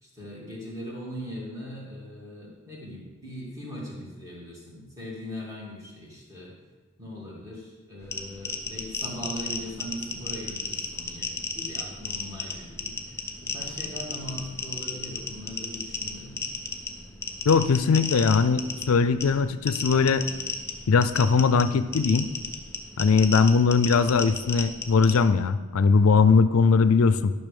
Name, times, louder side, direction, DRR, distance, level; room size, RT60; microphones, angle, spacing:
voice 1, 0.0-6.5 7.0-16.4, equal, 15° right, -5 dB, 2.6 m, -40 dB
sound 1, 8.0-25.2, left 3 dB, 10° left, 0.9 m, -34 dB
voice 2, 17.5-20.2 20.9-22.3 23.0-27.3, left 5 dB, 75° left, 13 dB, 0.4 m, -20 dB
12.5 x 6.2 x 5.3 m, 1.3 s
head